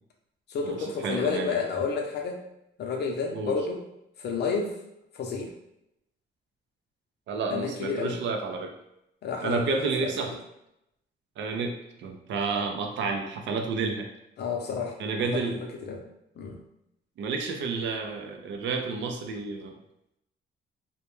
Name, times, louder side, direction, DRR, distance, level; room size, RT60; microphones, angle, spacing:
voice 1, 0.5-2.4 2.8-3.8 4.2-4.8 5.1-5.5 7.5-8.2 9.2-10.1 14.4-15.4 15.8-16.0 16.4-16.6, left 5 dB, 55° left, 2 dB, 0.5 m, -30 dB
voice 2, 1.0-1.6 3.3-3.6 7.3-8.7 9.4-10.3 11.4-14.1 15.0-15.6 17.2-19.8, right 4 dB, 70° right, 4 dB, 0.5 m, -30 dB
2.2 x 2.1 x 2.9 m, 0.82 s
cardioid pair, 90°, 20 cm